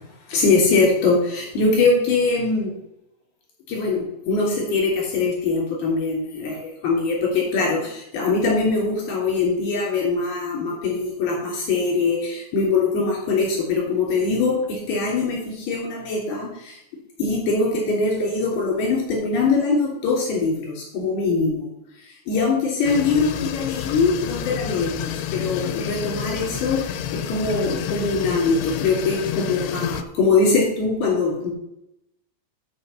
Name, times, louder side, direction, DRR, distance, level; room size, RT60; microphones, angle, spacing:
voice 1, 0.3-2.7 3.7-15.4 15.7-16.5 17.2-21.6 22.3-26.8 27.3-31.5, left 4 dB, 65° left, -2 dB, 5.0 m, -22 dB
sound 1, 22.8-30.0, left 9 dB, 90° left, 2.9 m, -29 dB
11.0 x 5.7 x 6.8 m, 0.82 s
omnidirectional pair, 4.9 m